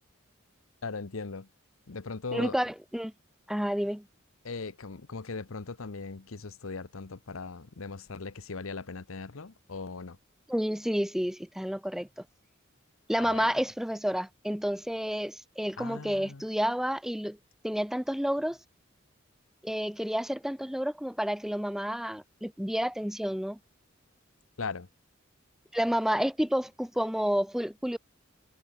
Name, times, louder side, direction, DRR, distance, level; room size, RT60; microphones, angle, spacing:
voice 1, 0.8-1.5 1.9-2.6 4.4-10.2 13.2-13.5 15.8-16.4 24.6-24.9, left 4 dB, 80° left, 0.9 m, -39 dB
voice 2, 2.3-3.1 3.5-4.0 10.5-12.1 13.1-17.4 17.6-18.6 19.6-23.6 25.7-28.0, equal, ahead, 0.7 m, -30 dB
head